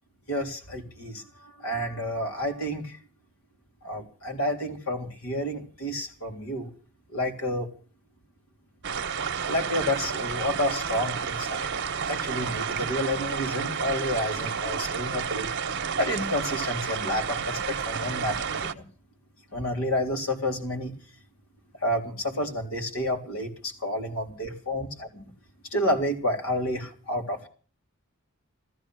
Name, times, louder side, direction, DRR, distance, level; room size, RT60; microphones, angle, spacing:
voice 1, 0.3-1.2 1.6-3.0 3.8-6.7 7.1-7.7 9.5-11.7 12.1-15.5 16.0-18.8 19.5-20.9 21.8-23.5 23.8-25.3 25.7-27.5, left 1 dB, 75° left, 3 dB, 3.7 m, -30 dB
sound 1, 8.8-18.7, right 6 dB, 60° right, 1.1 m, -31 dB
15.0 x 14.0 x 6.3 m, 0.41 s
head